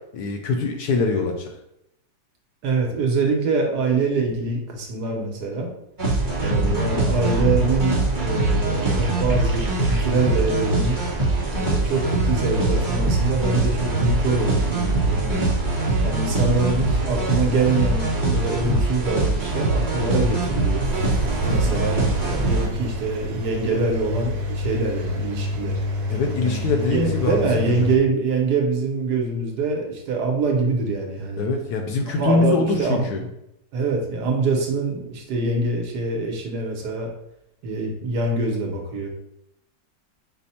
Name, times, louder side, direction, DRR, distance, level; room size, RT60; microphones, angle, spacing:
voice 1, 0.1-1.5 21.6-21.8 26.1-27.9 31.4-33.2, left 4 dB, 70° left, 3 dB, 1.0 m, -23 dB
voice 2, 2.6-5.7 6.4-11.0 11.6-15.5 16.0-20.9 21.5-25.8 26.4-26.6 26.9-31.5 32.1-33.3 33.7-37.1 37.6-39.1, right 3 dB, 65° right, 1 dB, 1.3 m, -24 dB
sound 1, 6.0-22.7, right 2 dB, 15° right, 0.7 m, -22 dB
Engine, 20.8-28.0, left 1 dB, 85° right, 1.5 m, -28 dB
6.0 x 2.1 x 4.1 m, 0.81 s
omnidirectional pair, 2.0 m